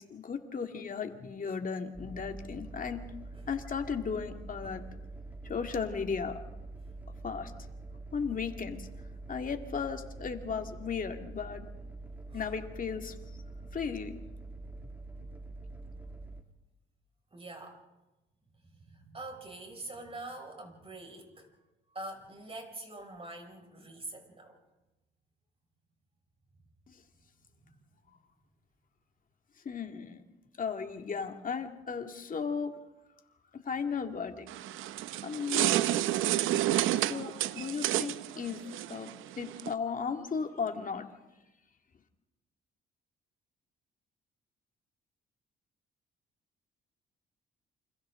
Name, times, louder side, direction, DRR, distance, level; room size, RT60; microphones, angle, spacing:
voice 1, 0.0-3.0 3.5-4.8 5.4-6.4 7.2-7.7 8.1-8.9 9.3-11.7 12.3-13.2 13.7-14.1 26.9-27.0 29.6-30.2 30.6-32.8 33.5-34.5 35.2-35.7 36.9-38.6 38.9-39.1 39.4-41.1, left 6 dB, 45° left, 5 dB, 2.3 m, -35 dB
sound 1, 1.9-16.4, right 2 dB, 10° right, 1.7 m, -45 dB
voice 2, 17.3-17.8 18.6-21.5 21.9-24.6 27.6-27.8, right 2 dB, 30° right, 3 dB, 6.0 m, -45 dB
sound 2, 34.5-39.7, right 13 dB, 90° right, 0.7 m, -30 dB
28.5 x 26.5 x 3.8 m, 1.0 s
cardioid pair, 90°, 20 cm